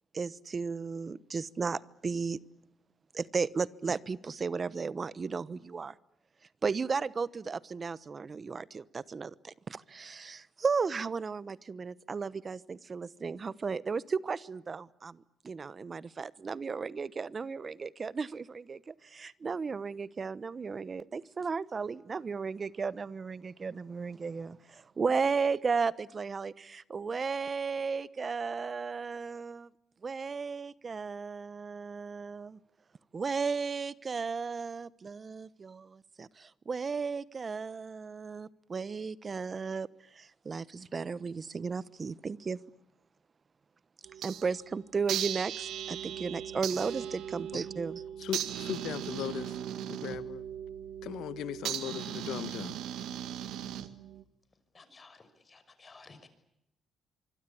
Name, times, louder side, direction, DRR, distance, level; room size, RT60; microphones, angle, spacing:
voice 1, 0.1-2.4 3.1-5.9 6.6-29.7 30.0-32.6 33.1-39.9 40.1-42.6 44.2-48.0, right 5 dB, 35° right, 1.1 m, -35 dB
sound 1, 44.0-44.6 45.1-54.2, right 10 dB, 85° right, 1.9 m, -38 dB
voice 2, 48.2-49.6 49.9-50.4 51.0-52.8, left 11 dB, 80° left, 1.5 m, -38 dB
voice 3, 54.7-56.3, left 4 dB, 30° left, 6.1 m, -55 dB
25.0 x 24.5 x 8.6 m
cardioid pair, 90°, 0 cm